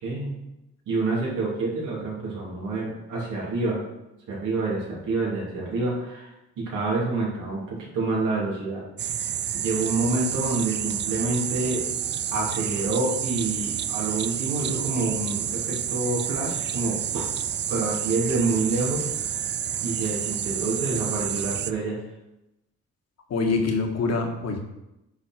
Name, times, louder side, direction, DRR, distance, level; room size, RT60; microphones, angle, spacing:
voice 1, 0.0-0.4 0.9-3.8 4.3-6.3 6.6-8.8 9.5-11.8 12.3-17.3 17.7-19.4 19.8-22.0, right 3 dB, 85° right, -5 dB, 3.1 m, -27 dB
sound 1, 9.0-21.7, right 9 dB, 40° right, 0.4 m, -29 dB
voice 2, 23.3-24.6, left 3 dB, 55° left, 3 dB, 1.5 m, -25 dB
9.5 x 4.3 x 4.4 m, 0.91 s
cardioid pair, 90°, 30 cm